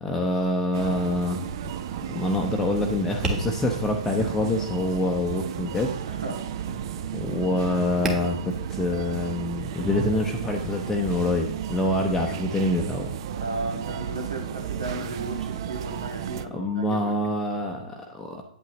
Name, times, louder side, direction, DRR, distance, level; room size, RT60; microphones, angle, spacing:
voice 1, 0.0-1.4 2.1-5.9 7.1-13.1 16.5-18.4, left 1 dB, 10° left, 1 dB, 0.7 m, -26 dB
sound 1, 0.7-16.5, right 9 dB, 45° right, 0.5 m, -34 dB
Tap, 1.4-11.1, right 2 dB, 15° right, 1.4 m, -39 dB
voice 2, 6.1-6.8 13.4-17.2, right 2 dB, 80° right, 1 dB, 2.2 m, -35 dB
8.8 x 8.2 x 3.1 m, 0.71 s
figure-of-eight pair, 125°, 4 cm